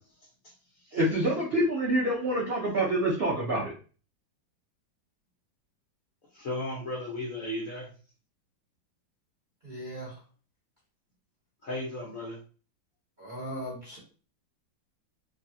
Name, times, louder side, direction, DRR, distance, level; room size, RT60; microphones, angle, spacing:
voice 1, 0.9-3.7, right 1 dB, 80° right, -5 dB, 0.5 m, -26 dB
voice 2, 6.3-7.9 11.6-12.4, left 1 dB, 55° left, -3 dB, 1.0 m, -35 dB
voice 3, 9.6-10.1 13.2-14.0, equal, 40° right, -6 dB, 0.7 m, -38 dB
3.3 x 2.4 x 2.6 m, 0.38 s
omnidirectional pair, 2.2 m